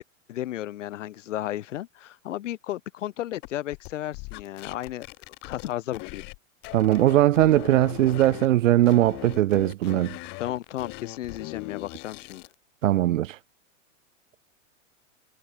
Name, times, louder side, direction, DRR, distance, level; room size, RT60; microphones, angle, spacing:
voice 1, 0.3-5.1 5.4-6.2 10.4-12.4, left 13 dB, 65° left, 5.1 m, -33 dB
sound 1, 3.4-6.4 6.6-8.5 8.8-12.5, left 30 dB, 25° left, 1.6 m, -40 dB
voice 2, 6.7-10.2 12.8-13.4, right 14 dB, 70° right, 1.3 m, -20 dB
supercardioid pair, 175°, 40 cm